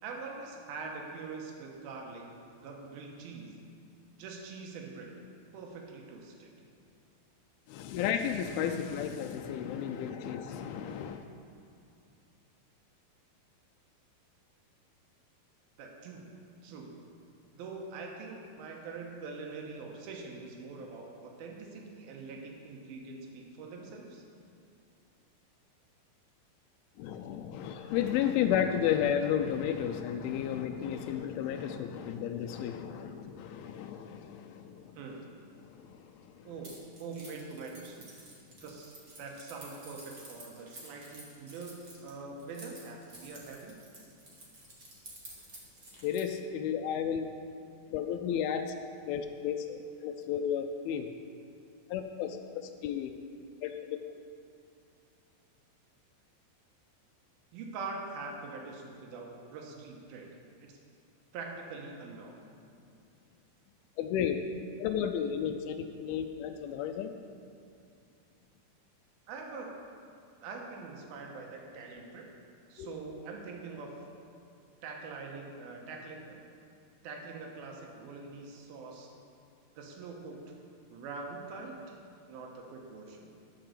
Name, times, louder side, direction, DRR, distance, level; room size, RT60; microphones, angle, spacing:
voice 1, 0.0-2.2 2.6-3.6 4.2-5.1 5.5-6.5 15.8-16.3 16.6-16.9 17.6-24.2 35.0-35.3 36.4-38.1 38.6-41.7 42.0-43.8 57.5-60.3 60.6-60.8 61.3-62.4 69.3-69.7 70.4-72.2 72.7-73.9 74.8-76.4 77.0-79.1 79.8-80.4 80.9-82.0 82.3-83.3, right 4 dB, 85° right, 0 dB, 2.9 m, -44 dB
voice 2, 7.7-11.3 27.0-35.0 35.6-36.5 46.0-47.3 47.9-48.7 49.1-51.1 51.9-53.1 53.6-54.0 64.0-64.4 64.8-67.1 72.8-72.9, left 9 dB, 90° left, 5 dB, 2.4 m, -33 dB
Keys jangling, 36.6-46.4, right 2 dB, 50° right, 0.9 m, -51 dB
10.0 x 6.0 x 6.6 m, 2.4 s
omnidirectional pair, 4.3 m